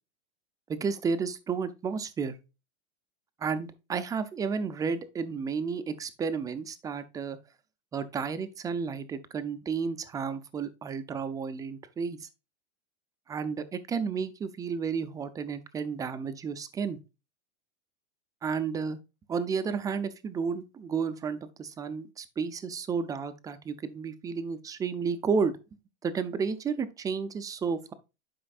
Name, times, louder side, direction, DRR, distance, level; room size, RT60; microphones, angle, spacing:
voice 1, 0.7-2.4 3.4-7.4 7.9-12.3 13.3-17.0 18.4-19.0 19.3-25.5 26.0-27.9, right 5 dB, 10° right, 0.5 m, -32 dB
11.0 x 5.1 x 2.4 m
supercardioid pair, 145°, 34 cm